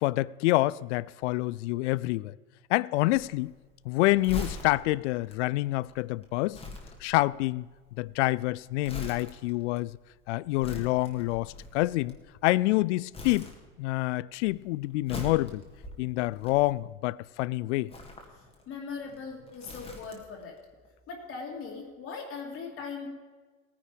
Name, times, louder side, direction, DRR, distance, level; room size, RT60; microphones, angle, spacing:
voice 1, 0.0-2.3 2.7-3.5 3.9-6.6 7.0-7.7 8.0-10.0 10.3-12.2 12.4-13.5 13.8-15.6 16.0-17.9, left 19 dB, 60° left, 0.5 m, -27 dB
Crumpling crinkling, 3.1-12.7 13.1-14.1 14.3-17.1 17.8-20.4 20.7-20.9, left 2 dB, 15° left, 2.0 m, -43 dB
voice 2, 18.7-20.5 21.1-23.1, left 5 dB, 30° left, 2.5 m, -39 dB
17.0 x 10.0 x 5.1 m
supercardioid pair, 130°, 41 cm